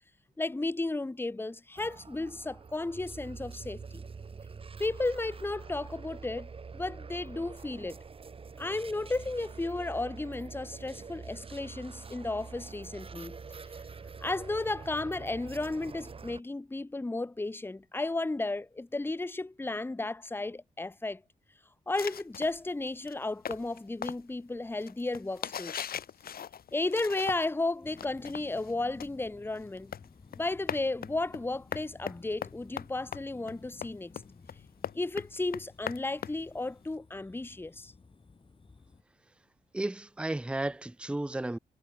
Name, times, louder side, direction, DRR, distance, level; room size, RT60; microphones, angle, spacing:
voice 1, 0.4-4.0 4.8-8.0 8.6-13.4 14.2-21.2 21.9-25.9 26.7-29.9 30.3-34.1 34.9-37.9, left 2 dB, 15° left, 1.0 m, -34 dB
sound 1, 1.8-16.4, right 5 dB, 35° right, 0.9 m, -45 dB
sound 2, 22.0-27.6 27.9-36.9, left 8 dB, 75° left, 1.9 m, -41 dB
sound 3, 27.8-39.0, left 4 dB, 35° left, 3.2 m, -56 dB
voice 2, 39.7-41.6, right 2 dB, 5° right, 0.6 m, -33 dB
cardioid pair, 95°, 16 cm